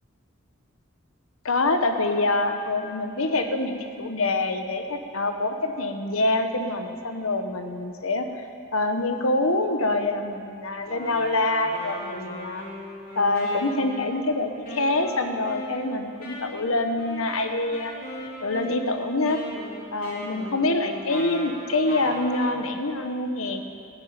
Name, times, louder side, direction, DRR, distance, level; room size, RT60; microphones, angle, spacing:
voice 1, 1.4-8.5 8.7-12.6 13.1-17.9 18.4-19.4 19.9-23.6, left 2 dB, 75° left, 7 dB, 1.2 m, -25 dB
Wind instrument woodwind instrument, 10.8-22.6, left 1 dB, 40° left, 3.7 m, -38 dB
13.5 x 11.0 x 8.8 m, 2.6 s
head